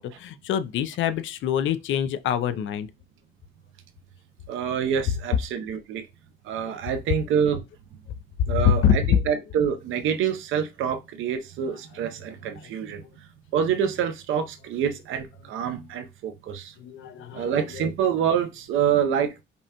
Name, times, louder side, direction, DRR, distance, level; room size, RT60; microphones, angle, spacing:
voice 1, 0.0-2.9 8.5-9.0 16.8-17.5 17.8-17.9, left 9 dB, 75° left, 0.5 m, -25 dB
voice 2, 4.5-6.1 6.4-7.6 8.5-13.0 13.5-16.7 17.3-19.3, right 8 dB, 85° right, 0.7 m, -26 dB
5.3 x 2.2 x 2.8 m
cardioid pair, 90°, 20 cm